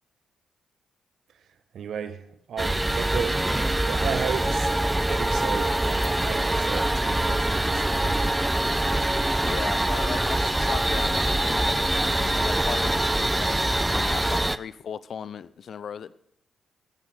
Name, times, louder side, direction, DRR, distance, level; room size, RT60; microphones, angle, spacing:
voice 1, 1.7-2.2 2.5-8.4, right 7 dB, 65° right, 1.5 m, -34 dB
sound 1, 2.6-14.6, right 1 dB, 10° right, 0.8 m, -24 dB
voice 2, 9.4-16.1, left 7 dB, 60° left, 0.7 m, -37 dB
14.5 x 11.5 x 6.8 m
hypercardioid pair, 45°, 0 cm